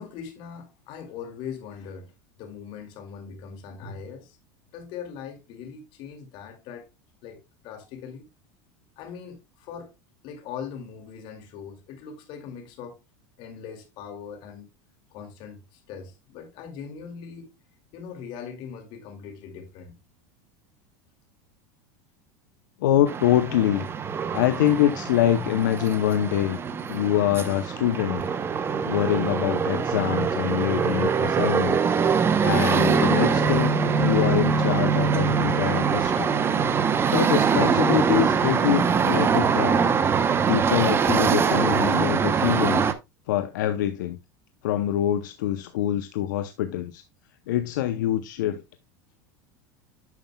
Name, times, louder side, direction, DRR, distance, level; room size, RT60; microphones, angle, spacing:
voice 1, 0.0-2.1 2.4-4.4 4.7-6.9 7.2-8.3 9.0-9.9 10.2-13.0 13.4-14.7 15.1-17.5 17.9-20.0, left 7 dB, 55° left, 2.3 m, -40 dB
voice 2, 22.8-23.9 24.3-26.6 26.9-28.3 28.8-31.8 32.4-36.3 37.1-39.8 40.5-42.9 43.3-44.2 44.6-47.0 47.5-48.6, left 12 dB, 80° left, 0.7 m, -25 dB
sound 1, 23.1-42.9, right 6 dB, 25° right, 0.7 m, -23 dB
9.4 x 6.8 x 2.2 m
supercardioid pair, 120°, 10 cm